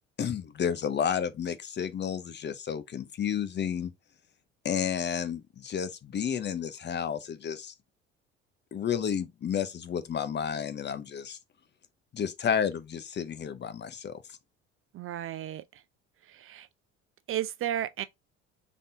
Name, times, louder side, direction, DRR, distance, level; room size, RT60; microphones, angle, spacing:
voice 1, 0.2-3.9 4.6-7.7 8.7-11.4 12.1-14.4, left 8 dB, 35° left, 0.6 m, -31 dB
voice 2, 14.9-15.8 16.3-16.7 17.3-18.0, right 11 dB, 40° right, 0.4 m, -33 dB
4.1 x 3.4 x 2.6 m
hypercardioid pair, 65°, 33 cm